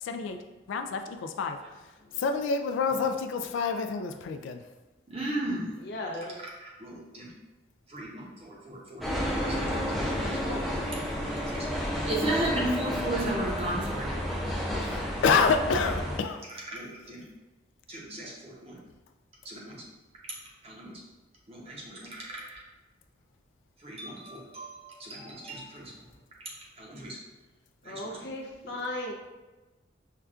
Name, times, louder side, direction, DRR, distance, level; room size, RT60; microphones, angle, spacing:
voice 1, 0.0-0.4 0.7-1.6 2.2-4.6 14.8-16.4, left 5 dB, 85° left, 6 dB, 0.3 m, -28 dB
voice 2, 5.1-5.7 6.4-7.3 7.9-9.0 9.5-10.4 11.3-14.1 16.7-17.2 17.9-18.8 19.4-19.8 20.2-20.4 20.6-21.0 21.5-22.6 23.8-26.0 26.4-27.2 27.8-28.3 28.6-28.8, right 1 dB, 30° right, -4 dB, 0.7 m, -36 dB
voice 3, 5.8-6.4 10.4-10.7 18.2-18.3 27.8-29.1, left 1 dB, 60° left, -1 dB, 0.6 m, -37 dB
sound 1, 9.0-16.2, equal, ahead, 0.4 m, -31 dB
5.5 x 2.3 x 2.4 m, 1.1 s
head